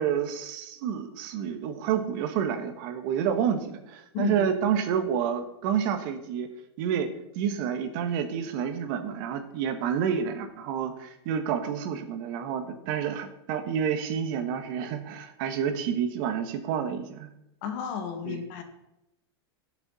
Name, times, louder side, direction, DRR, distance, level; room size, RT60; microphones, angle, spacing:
voice 1, 0.0-6.5 6.8-7.1 7.3-17.3 18.2-18.4, right 8 dB, 50° right, 8 dB, 1.5 m, -29 dB
voice 2, 4.1-4.5 17.6-18.6, left 7 dB, 50° left, 6 dB, 2.0 m, -33 dB
17.5 x 7.0 x 4.2 m, 0.88 s
supercardioid pair, 140°, 14 cm